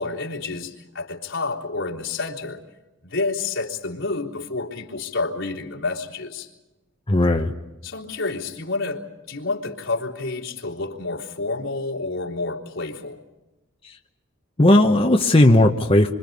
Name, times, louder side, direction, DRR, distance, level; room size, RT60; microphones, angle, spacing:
voice 1, 0.0-2.6 3.0-6.5 7.8-13.2, left 3 dB, 80° left, -3 dB, 3.6 m, -29 dB
voice 2, 7.1-7.5 13.8-14.0 14.6-16.1, left 1 dB, 30° left, 3 dB, 1.1 m, -16 dB
27.5 x 26.0 x 5.4 m, 1.0 s
head